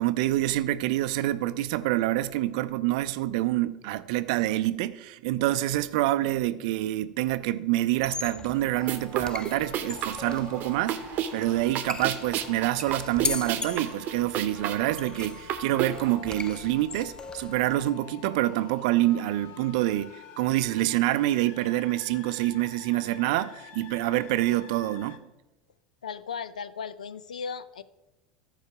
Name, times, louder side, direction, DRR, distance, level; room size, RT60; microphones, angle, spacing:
voice 1, 0.0-11.1 11.3-25.2, right 15 dB, 65° right, 0.5 m, -27 dB
sound 1, 7.9-17.8, left 4 dB, 20° left, 0.5 m, -39 dB
sound 2, 8.8-16.2, right 9 dB, 50° right, 0.9 m, -33 dB
sound 3, 9.1-25.2, left 9 dB, 60° left, 0.9 m, -48 dB
voice 2, 26.0-27.8, left 6 dB, 90° left, 0.5 m, -36 dB
13.5 x 4.7 x 4.8 m
hypercardioid pair, 80°, 4 cm